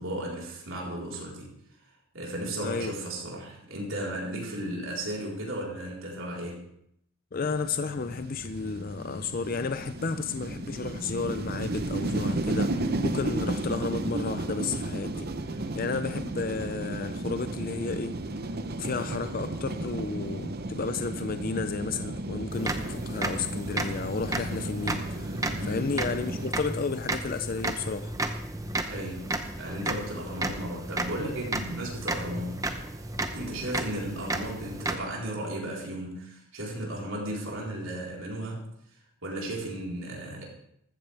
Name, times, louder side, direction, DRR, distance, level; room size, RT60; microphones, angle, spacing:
voice 1, 0.0-1.5 2.1-6.6 25.6-25.9 28.9-32.6 33.3-38.6 39.2-40.5, right 1 dB, 65° right, -3 dB, 4.1 m, -35 dB
voice 2, 2.6-2.9 7.3-15.3 15.5-18.2 18.8-28.1, left 4 dB, 40° left, 10 dB, 0.5 m, -32 dB
sound 1, 7.4-26.5, right 2 dB, 45° right, 0.8 m, -34 dB
sound 2, 22.5-35.0, right 2 dB, 15° right, 0.8 m, -33 dB
14.5 x 14.0 x 3.4 m, 0.72 s
head